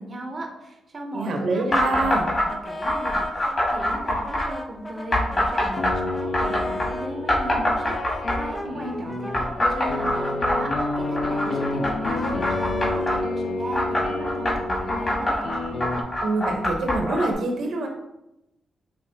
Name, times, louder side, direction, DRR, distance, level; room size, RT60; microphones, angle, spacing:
voice 1, 0.0-15.5, right 1 dB, 35° right, 1 dB, 0.6 m, -37 dB
voice 2, 1.1-2.2 16.2-17.9, right 2 dB, 70° right, 3 dB, 0.7 m, -25 dB
sound 1, 1.7-2.5 2.8-4.5 5.1-6.9 7.3-8.6 9.3-13.2 13.7-17.3, left 1 dB, 35° left, 1.6 m, -24 dB
Brass instrument, 2.0-7.1 7.6-13.9, left 1 dB, 20° left, 0.6 m, -37 dB
sound 2, 5.6-16.0, left 2 dB, 60° left, 0.5 m, -30 dB
5.6 x 2.9 x 2.7 m, 0.90 s
cardioid pair, 115°, 0 cm